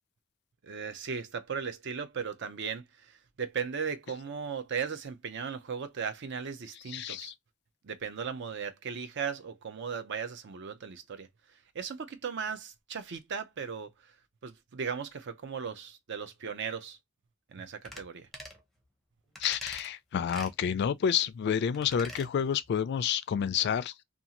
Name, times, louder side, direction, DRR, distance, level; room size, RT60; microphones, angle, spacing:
voice 1, 0.6-7.3 7.8-11.3 11.7-14.1 14.4-17.0 17.5-18.3, right 6 dB, 55° right, 0.5 m, -37 dB
voice 2, 6.9-7.3 19.4-23.9, left 8 dB, 55° left, 0.3 m, -29 dB
sound 1, 17.8-18.1 18.3-18.6 19.4-19.9 20.3-20.5 21.7-22.3 22.6-22.7, equal, ahead, 0.6 m, -44 dB
2.6 x 2.4 x 2.8 m
head